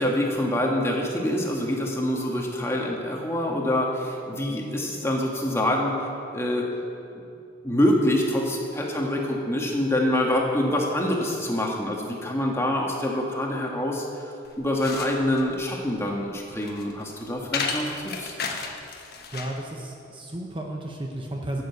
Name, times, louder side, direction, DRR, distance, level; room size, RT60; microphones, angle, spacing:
voice 1, 0.0-6.0 6.3-6.7 7.6-17.9 18.2-18.3, left 1 dB, 15° left, -1 dB, 1.6 m, -25 dB
sound 1, 14.4-19.6, left 4 dB, 50° left, 1.2 m, -34 dB
voice 2, 19.3-21.6, right 1 dB, 25° right, 1 dB, 0.8 m, -33 dB
11.5 x 7.9 x 8.0 m, 2.7 s
head